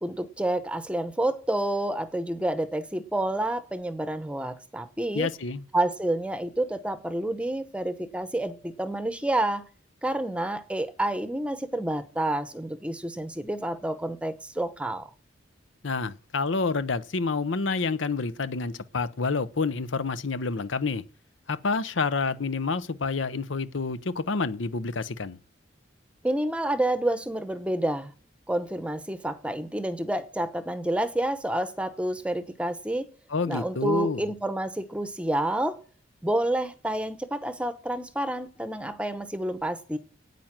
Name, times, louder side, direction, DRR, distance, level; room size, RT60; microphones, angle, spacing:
voice 1, 0.0-5.3 5.7-9.6 10.0-15.1 26.2-28.1 28.5-33.1 33.5-35.8 36.2-40.0, right 1 dB, 5° right, 0.8 m, -29 dB
voice 2, 5.1-5.6 15.8-21.0 21.5-25.4 33.3-34.3, left 4 dB, 80° left, 0.8 m, -28 dB
9.2 x 9.1 x 7.4 m
head